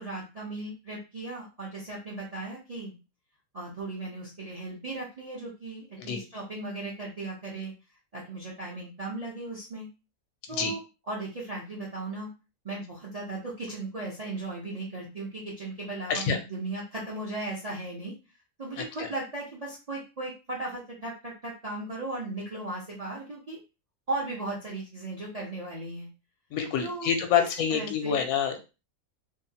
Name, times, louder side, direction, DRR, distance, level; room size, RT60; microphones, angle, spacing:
voice 1, 0.0-2.9 3.5-7.7 8.1-9.9 10.5-10.8 11.1-12.3 12.6-18.1 18.6-23.6 24.1-26.1 26.8-27.1 27.3-28.2, right 2 dB, 45° right, -4 dB, 0.5 m, -36 dB
voice 2, 18.8-19.1 26.5-28.6, left 7 dB, 75° left, 5 dB, 1.0 m, -27 dB
2.8 x 2.0 x 2.7 m, 0.30 s
omnidirectional pair, 1.6 m